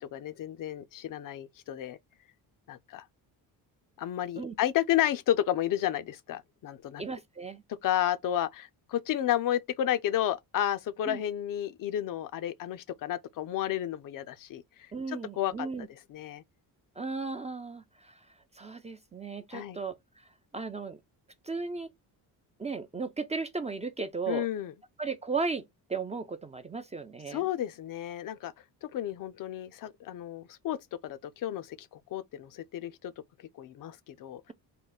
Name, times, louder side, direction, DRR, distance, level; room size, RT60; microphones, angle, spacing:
voice 1, 0.0-2.0 2.7-3.1 4.0-7.0 7.8-15.7 16.1-16.4 19.5-19.8 24.3-24.7 27.3-28.5 28.8-33.1 33.5-34.4, left 12 dB, 55° left, 0.5 m, -32 dB
voice 2, 7.0-7.6 11.1-11.2 14.9-15.9 17.0-18.2 18.6-20.0 20.5-21.0 21.4-21.9 22.6-24.5 25.0-25.6 25.9-27.4, right 4 dB, 20° right, 0.4 m, -35 dB
3.8 x 2.2 x 3.9 m
cardioid pair, 100°, 39 cm